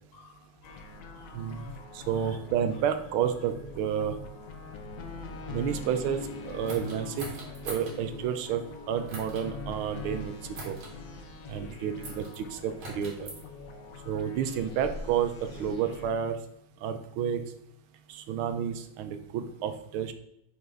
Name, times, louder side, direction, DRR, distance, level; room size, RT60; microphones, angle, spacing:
voice 1, 0.1-2.4 5.2-5.3 11.5-11.8, left 5 dB, 80° left, 2 dB, 1.9 m, -55 dB
sound 1, 0.6-16.1, left 3 dB, 60° left, 1.4 m, -43 dB
voice 2, 1.3-1.7 2.1-4.1 5.5-6.2 6.4-7.3 7.7-10.3 10.6-10.8 11.5-13.3 14.1-15.3 15.6-16.4 16.8-17.4 18.1-20.1, right 8 dB, 75° right, 9 dB, 1.5 m, -30 dB
sound 2, 6.6-8.0 9.1-9.5 10.5-10.9 12.0-12.4 12.8-13.4 14.3-15.7, right 2 dB, 55° right, 2.4 m, -41 dB
5.8 x 5.6 x 3.8 m, 0.80 s
omnidirectional pair, 2.4 m